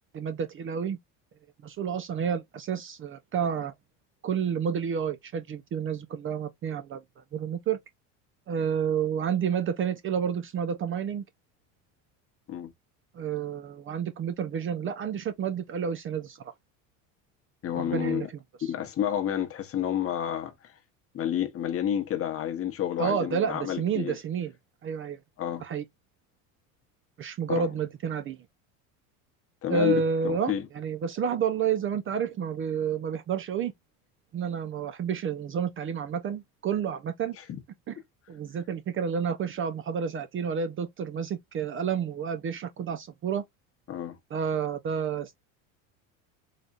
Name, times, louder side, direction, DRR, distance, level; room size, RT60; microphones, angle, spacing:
voice 1, 0.1-1.0 1.6-3.7 4.2-7.8 8.5-11.2 13.1-16.4 17.8-18.3 18.6-18.7 23.0-24.5 24.8-25.2 25.6-25.8 27.2-28.4 29.7-33.7 34.3-37.4 37.9-38.0 38.3-43.4 44.3-45.3, right 7 dB, 30° right, 0.5 m, -30 dB
voice 2, 17.6-18.3 18.6-20.5 21.1-24.2 25.4-25.6 27.5-27.7 29.6-30.6 43.9-44.2, left 10 dB, 35° left, 0.9 m, -30 dB
4.1 x 3.1 x 2.4 m
supercardioid pair, 110°, 40 cm